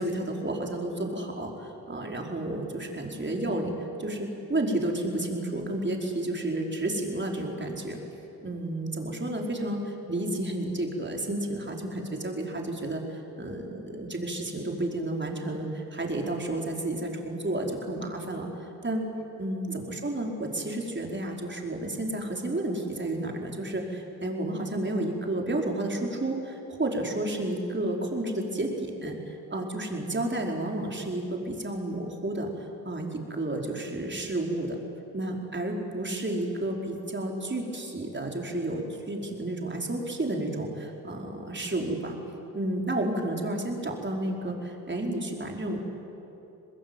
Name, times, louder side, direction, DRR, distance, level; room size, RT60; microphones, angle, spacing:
voice 1, 0.0-8.0 8.4-18.5 18.8-19.1 19.4-34.8 35.1-42.2 42.5-45.8, right 1 dB, 25° right, 1 dB, 5.1 m, -31 dB
25.0 x 20.5 x 9.2 m, 2.9 s
hypercardioid pair, 50°, 45 cm